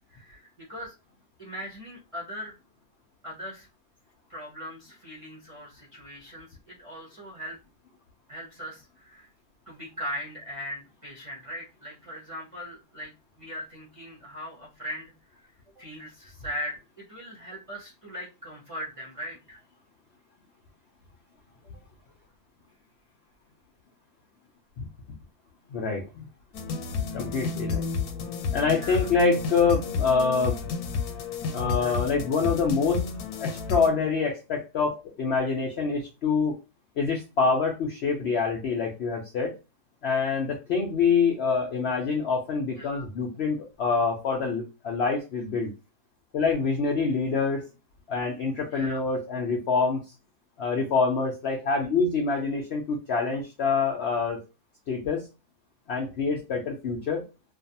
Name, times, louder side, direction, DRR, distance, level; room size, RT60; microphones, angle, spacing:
voice 1, 0.1-0.9 1.4-2.5 3.2-3.7 4.3-7.6 8.3-9.3 9.7-15.4 15.7-19.6 28.8-29.0 31.8-32.0 42.7-43.1 48.7-49.0, equal, 30° right, -5 dB, 0.6 m, -39 dB
voice 2, 25.7-26.2 27.1-27.8 28.5-30.6 31.5-33.1 33.4-36.6 37.0-39.5 40.0-45.7 46.3-47.7 48.1-50.0 50.6-54.4 54.9-55.3 55.9-57.2, left 4 dB, 65° left, 1 dB, 0.6 m, -26 dB
sound 1, 26.5-33.9, left 5 dB, 85° left, 1.1 m, -31 dB
2.5 x 2.3 x 2.6 m, 0.28 s
omnidirectional pair, 1.6 m